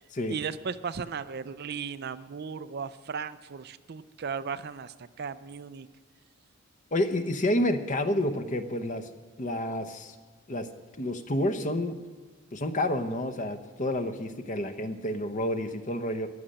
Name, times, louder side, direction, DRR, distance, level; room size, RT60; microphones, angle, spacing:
voice 1, 0.3-5.9, right 6 dB, 45° right, 13 dB, 0.4 m, -36 dB
voice 2, 6.9-9.1 9.4-10.1 10.5-10.7 11.0-12.0 12.5-16.3, left 1 dB, 35° left, 9 dB, 0.8 m, -29 dB
14.5 x 6.5 x 10.0 m, 1.4 s
head